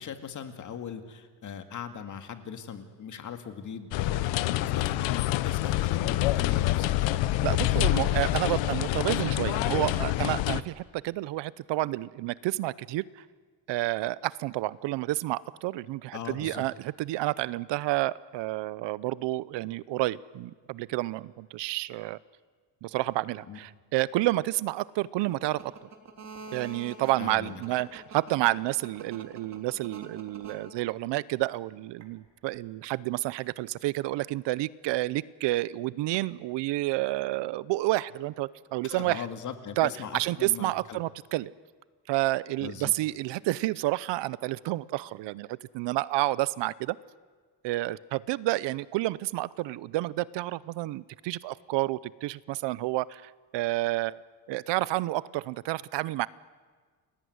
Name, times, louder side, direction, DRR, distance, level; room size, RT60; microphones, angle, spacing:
voice 1, 0.0-4.3 4.6-6.9 16.1-16.6 23.5-23.6 27.2-27.6 38.8-41.0 42.6-42.9, left 7 dB, 40° left, 7 dB, 2.3 m, -39 dB
sound 1, 3.9-10.6, left 15 dB, 80° left, 1.1 m, -26 dB
voice 2, 7.4-13.0 13.7-22.2 22.8-25.7 26.5-39.3 39.8-41.5 42.1-47.0 47.6-54.2 54.5-56.3, right 17 dB, 70° right, 20 dB, 0.7 m, -30 dB
sound 2, 25.3-31.2 32.0-32.6 36.1-36.2, right 4 dB, 35° right, 3.3 m, -45 dB
29.5 x 20.5 x 9.5 m, 1.5 s
cardioid pair, 160°, 44 cm